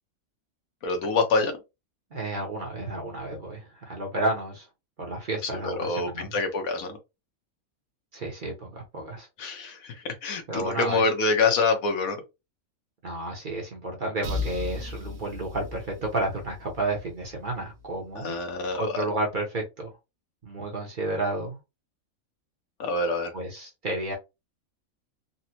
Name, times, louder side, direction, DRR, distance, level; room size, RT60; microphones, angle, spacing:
voice 1, 0.8-1.6 5.6-7.0 9.4-12.2 18.1-19.0 22.8-23.3, left 3 dB, 80° left, 1.3 m, -26 dB
voice 2, 2.1-4.7 5.0-6.4 8.1-9.3 10.5-11.1 13.0-18.4 18.7-19.9 20.4-21.6 23.3-24.1, right 2 dB, 45° right, 0.8 m, -31 dB
sound 1, 14.2-17.9, left 3 dB, 70° right, 1.0 m, -36 dB
4.0 x 2.1 x 2.8 m
omnidirectional pair, 1.5 m